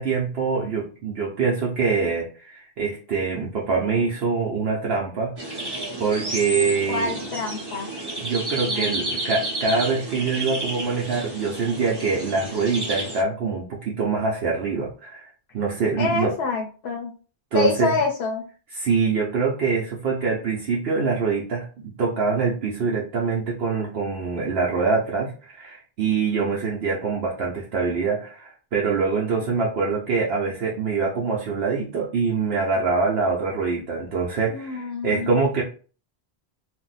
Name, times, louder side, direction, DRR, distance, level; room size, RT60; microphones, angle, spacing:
voice 1, 0.0-5.7 6.0-7.2 8.1-16.4 17.5-18.0 18.7-35.6, right 4 dB, 75° right, -3 dB, 0.9 m, -24 dB
sound 1, 5.4-13.2, right 2 dB, 25° right, 0.7 m, -31 dB
voice 2, 6.9-7.9 8.6-8.9 16.0-17.1 17.5-18.4 34.5-35.3, left 4 dB, 75° left, 1 dB, 0.8 m, -26 dB
2.5 x 2.1 x 3.9 m, 0.38 s
omnidirectional pair, 1.1 m